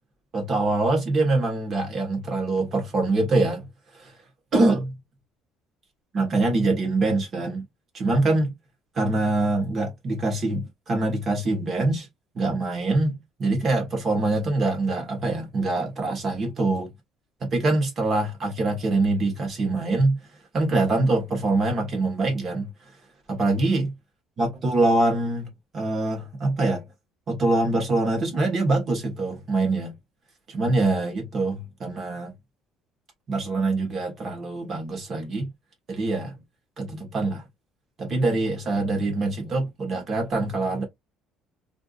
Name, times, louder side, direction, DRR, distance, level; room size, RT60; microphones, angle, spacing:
voice 1, 0.3-3.6 3.9-4.1 4.5-5.0 6.1-7.6 7.9-8.5 8.9-12.1 12.3-16.9 17.4-20.2 20.5-22.7 23.3-23.9 24.4-26.8 27.3-29.9 30.5-32.3 33.3-35.5 35.9-36.4 36.8-37.4 38.0-40.8, right 2 dB, 30° right, 1.4 m, -24 dB
3.4 x 2.6 x 2.4 m
cardioid pair, 160°, 0 cm